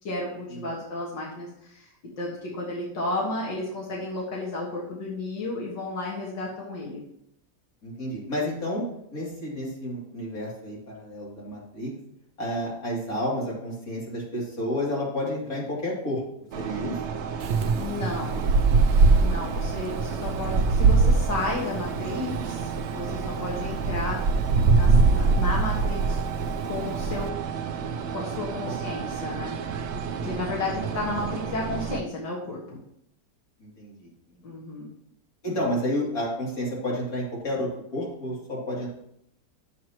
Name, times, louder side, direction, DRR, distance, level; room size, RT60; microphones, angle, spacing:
voice 1, 0.0-1.9 2.2-7.0 17.5-18.6 19.2-26.2 26.7-27.3 28.1-29.6 30.2-32.8 34.4-34.9, left 2 dB, 85° left, -4 dB, 2.5 m, -33 dB
voice 2, 7.8-8.8 9.1-11.9 12.4-16.2 16.5-17.0 30.1-30.5 33.6-34.4 35.4-38.9, left 1 dB, 55° left, -5 dB, 3.5 m, -31 dB
sound 1, 16.5-32.0, right 6 dB, 80° right, 0.6 m, -33 dB
Wind, 17.4-27.3, right 4 dB, 65° right, 0.9 m, -22 dB
12.0 x 7.3 x 3.1 m, 0.75 s
omnidirectional pair, 1.9 m